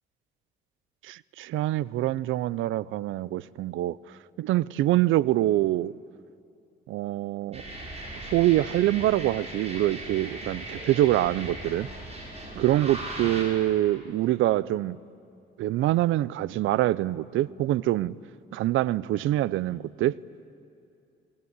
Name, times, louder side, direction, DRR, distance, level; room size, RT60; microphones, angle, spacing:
voice 1, 1.0-4.0 4.4-5.9 6.9-7.6 8.2-11.9 12.6-15.0 15.6-18.1 18.5-20.2, right 14 dB, 85° right, 21 dB, 0.6 m, -25 dB
sound 1, 7.5-13.4, right 1 dB, 30° right, 6.8 m, -38 dB
27.5 x 20.0 x 9.6 m, 2.5 s
cardioid pair, 90°, 20 cm